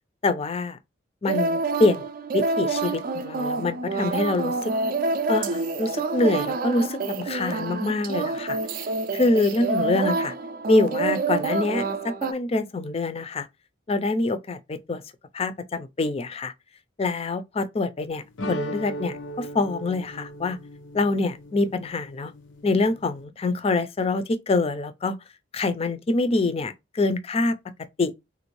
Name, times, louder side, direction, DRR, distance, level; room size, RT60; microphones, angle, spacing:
voice 1, 0.2-0.8 1.2-2.1 2.3-4.5 5.3-8.6 9.1-10.3 10.7-13.5 13.9-15.0 15.3-16.5 17.0-20.6 20.9-22.3 22.6-25.2 25.5-27.5 28.0-28.1, left 2 dB, 30° left, 0.4 m, -25 dB
sound 1, 1.3-12.3, right 3 dB, 50° right, 0.4 m, -27 dB
sound 2, 18.4-23.2, equal, 90° left, 0.7 m, -37 dB
3.5 x 2.6 x 3.0 m
head